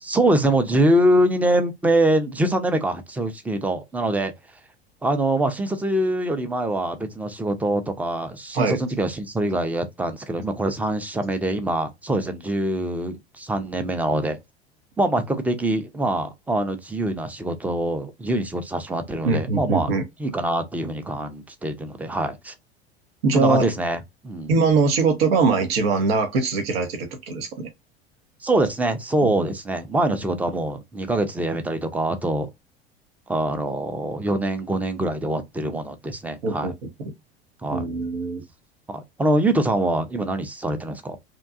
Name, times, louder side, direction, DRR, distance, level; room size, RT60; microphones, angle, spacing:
voice 1, 0.0-4.3 5.0-14.4 15.0-19.9 20.2-22.5 23.3-24.5 28.4-32.5 33.3-36.7 37.6-37.9 38.9-41.2, right 1 dB, 5° right, 0.5 m, -24 dB
voice 2, 19.2-20.0 23.2-23.6 24.5-27.7 29.2-29.3 36.4-36.7 37.7-38.4, right 4 dB, 70° right, 0.8 m, -22 dB
2.7 x 2.2 x 2.4 m
figure-of-eight pair, 75°, 31 cm